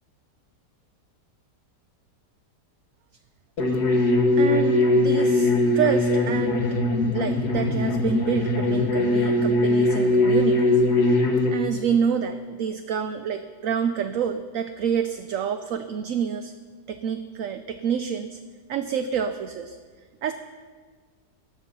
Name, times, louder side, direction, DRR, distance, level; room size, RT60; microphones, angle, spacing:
sound 1, 3.6-11.5, left 2 dB, 70° left, 2.3 m, -21 dB
voice 1, 4.4-6.7 7.1-10.8 11.5-16.5 16.9-18.4 18.7-19.8 20.2-20.3, right 7 dB, 60° right, 8 dB, 1.0 m, -27 dB
19.5 x 13.5 x 5.5 m, 1.5 s
omnidirectional pair, 1.8 m